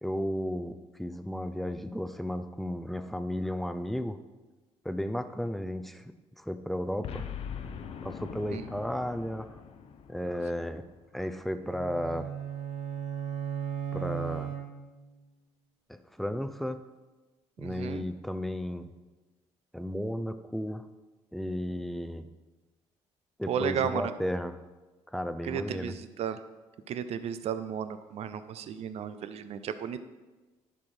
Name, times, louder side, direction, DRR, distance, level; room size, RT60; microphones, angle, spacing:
voice 1, 0.0-4.2 4.8-7.2 8.0-9.6 10.1-10.9 11.1-12.3 13.9-14.5 16.2-16.8 17.6-18.9 19.7-20.9 21.3-22.3 23.4-24.6 25.1-26.0, equal, ahead, 10 dB, 0.5 m, -34 dB
Boom, 7.0-11.4, left 7 dB, 60° left, 0.6 m, -42 dB
sound 1, 11.6-15.2, right 9 dB, 85° right, 1.0 m, -36 dB
voice 2, 17.6-18.0 23.5-24.0 25.4-26.4 26.9-30.0, right 8 dB, 65° right, 12 dB, 0.6 m, -34 dB
10.5 x 4.4 x 5.0 m, 1.2 s
cardioid pair, 85°, 11 cm